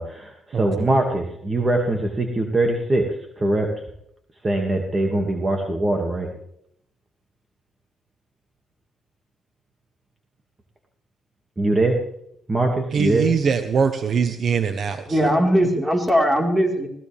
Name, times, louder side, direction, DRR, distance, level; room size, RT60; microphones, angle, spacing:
voice 1, 0.0-3.1 3.4-3.7 4.4-6.3 11.6-12.0 12.5-13.3, right 2 dB, 25° right, 2 dB, 2.4 m, -22 dB
voice 2, 0.5-0.9 12.9-15.3, right 6 dB, 55° right, 9 dB, 1.1 m, -22 dB
voice 3, 15.1-16.9, equal, 10° right, 1 dB, 4.7 m, -19 dB
20.5 x 18.0 x 3.6 m, 0.75 s
cardioid pair, 90°, 0 cm